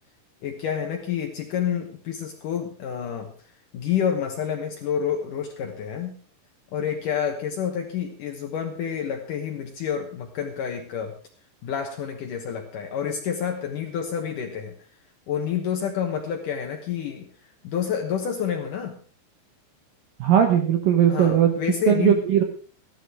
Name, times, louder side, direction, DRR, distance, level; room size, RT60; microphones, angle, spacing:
voice 1, 0.4-3.3 3.7-6.2 6.7-11.1 11.6-14.7 15.3-17.3 17.6-19.0 21.1-22.2, left 8 dB, 80° left, 3 dB, 1.8 m, -28 dB
voice 2, 20.2-21.6 21.9-22.4, right 9 dB, 80° right, 5 dB, 2.0 m, -19 dB
14.5 x 12.0 x 4.8 m, 0.43 s
omnidirectional pair, 5.6 m